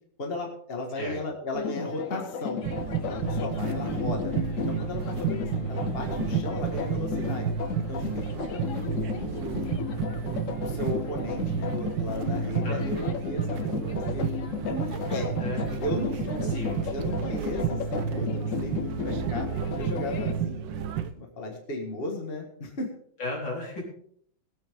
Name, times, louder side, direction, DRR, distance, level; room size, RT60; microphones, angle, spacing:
voice 1, 0.2-2.6 3.1-7.5 7.8-9.6 10.6-14.3 14.6-16.5 16.9-19.5 19.8-20.9 21.2-22.9, left 2 dB, 30° left, 2 dB, 2.0 m, -35 dB
sound 1, 1.5-20.3, left 8 dB, 55° left, 1.0 m, -35 dB
sound 2, 2.6-21.1, right 7 dB, 75° right, 1.5 m, -31 dB
voice 2, 3.6-4.0 12.6-13.1 15.4-16.0 16.4-16.9 23.2-23.8, left 2 dB, 75° left, -4 dB, 5.1 m, -35 dB
21.0 x 8.5 x 3.7 m, 0.62 s
omnidirectional pair, 2.1 m